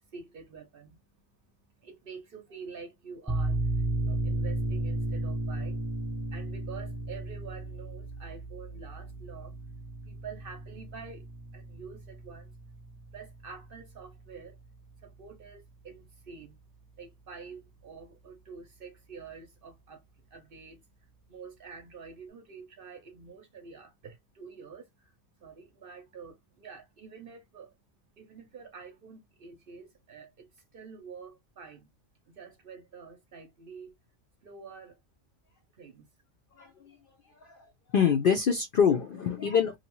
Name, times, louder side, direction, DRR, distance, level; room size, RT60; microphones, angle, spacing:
voice 1, 0.0-31.9 32.3-33.9 34.4-35.0 35.7-36.1, right 5 dB, 55° right, 0.7 m, -48 dB
sound 1, 3.3-14.6, right 2 dB, ahead, 0.5 m, -34 dB
voice 2, 36.6-37.0 37.4-37.6 37.9-39.8, left 7 dB, 65° left, 0.5 m, -25 dB
2.7 x 2.3 x 2.9 m
omnidirectional pair, 1.4 m